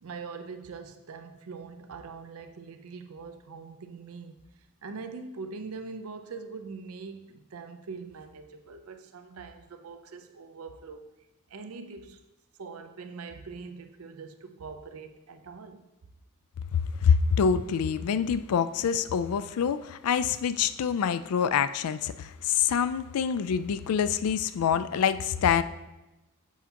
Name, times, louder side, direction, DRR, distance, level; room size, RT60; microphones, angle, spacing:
voice 1, 0.0-4.4 4.8-11.1 11.5-12.2 12.6-15.9, right 4 dB, 75° right, 7 dB, 0.5 m, -42 dB
voice 2, 16.7-25.6, left 7 dB, 85° left, 13 dB, 0.3 m, -26 dB
7.2 x 5.7 x 2.9 m, 1.0 s
head